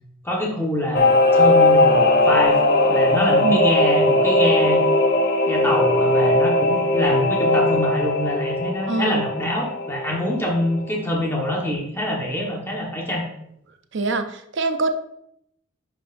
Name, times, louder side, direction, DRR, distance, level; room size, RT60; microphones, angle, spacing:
voice 1, 0.2-2.6 2.9-4.8 5.5-13.2, left 1 dB, 10° left, -2 dB, 1.3 m, -25 dB
Singing / Musical instrument, 0.9-11.0 11.3-11.4, left 2 dB, 50° left, 0.7 m, -19 dB
voice 2, 8.9-9.2 13.9-14.9, right 3 dB, 55° right, 8 dB, 0.6 m, -23 dB
10.5 x 5.1 x 2.6 m, 0.74 s
head